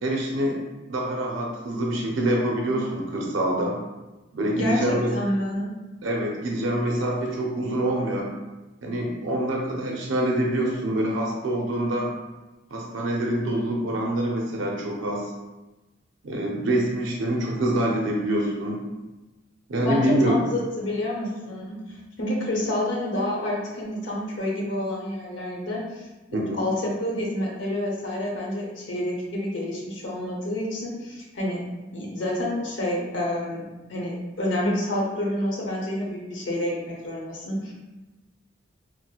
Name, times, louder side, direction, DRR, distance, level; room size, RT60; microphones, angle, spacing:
voice 1, 0.0-0.6 0.9-3.7 4.3-5.1 6.0-8.3 8.8-12.1 12.7-15.3 16.2-18.8 19.7-20.4 26.3-26.6, right 1 dB, 80° right, -1 dB, 0.5 m, -25 dB
voice 2, 4.5-5.7 19.8-21.8 22.2-26.1 26.3-31.6 31.9-37.7, left 1 dB, 70° left, -3 dB, 0.8 m, -28 dB
4.2 x 2.0 x 2.3 m, 1.1 s
head